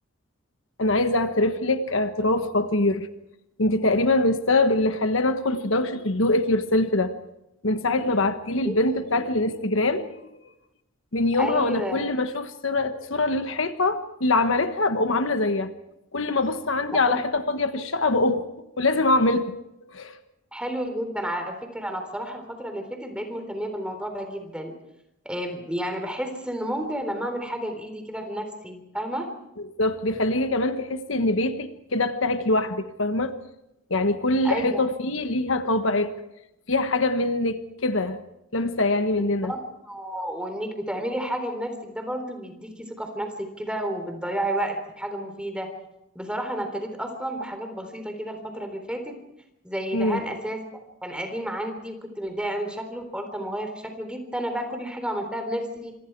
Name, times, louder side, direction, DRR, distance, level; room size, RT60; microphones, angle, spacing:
voice 1, 0.8-3.1 3.6-7.1 7.6-10.1 11.1-15.7 16.1-18.4 18.8-19.5 19.9-20.2 29.8-33.4 33.9-36.2 36.7-38.2 38.5-39.5 49.9-50.2, left 2 dB, 70° left, 9 dB, 1.4 m, -23 dB
voice 2, 11.4-12.0 17.0-17.2 20.5-24.7 25.3-29.3 34.4-34.9 39.4-39.6 39.8-45.7 46.2-49.1 49.6-50.6 51.0-56.0, right 1 dB, 5° right, 6 dB, 3.7 m, -31 dB
26.5 x 25.0 x 4.7 m, 0.85 s
head